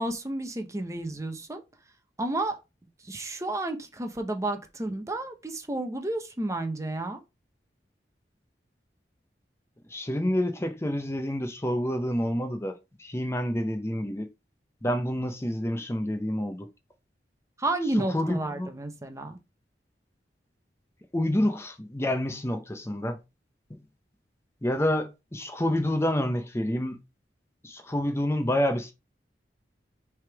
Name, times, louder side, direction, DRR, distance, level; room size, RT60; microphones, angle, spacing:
voice 1, 0.0-1.6 2.2-2.6 3.0-7.2 17.6-19.4, right 2 dB, 20° right, 0.8 m, -31 dB
voice 2, 9.9-14.3 14.8-16.7 18.0-18.7 21.1-23.2 23.7-23.8 24.6-27.0 27.6-28.9, left 1 dB, 15° left, 0.7 m, -28 dB
6.3 x 3.5 x 4.6 m
head